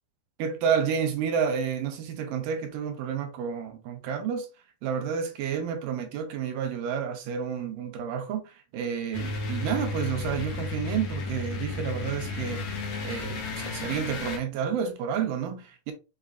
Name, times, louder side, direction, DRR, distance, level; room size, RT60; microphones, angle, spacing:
voice 1, 0.4-4.5 4.8-15.9, right 7 dB, 90° right, 2.4 m, -30 dB
sound 1, 9.1-14.4, left 3 dB, 65° left, 1.8 m, -33 dB
6.7 x 2.4 x 2.3 m
omnidirectional pair, 3.7 m